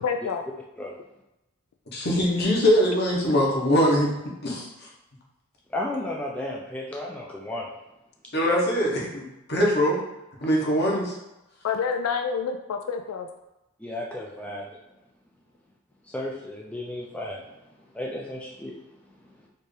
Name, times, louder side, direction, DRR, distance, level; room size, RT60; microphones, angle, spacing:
voice 1, 0.0-0.4 11.6-13.3, left 6 dB, 85° left, 6 dB, 0.3 m, -28 dB
voice 2, 1.9-4.1 4.4-4.9 8.3-10.0 10.4-11.1, equal, 50° left, -2 dB, 1.0 m, -22 dB
voice 3, 5.7-7.7 13.8-14.7 16.0-17.5 17.9-18.8 19.4-19.5, left 1 dB, 5° left, -2 dB, 0.3 m, -33 dB
4.4 x 2.5 x 3.2 m, 0.94 s
head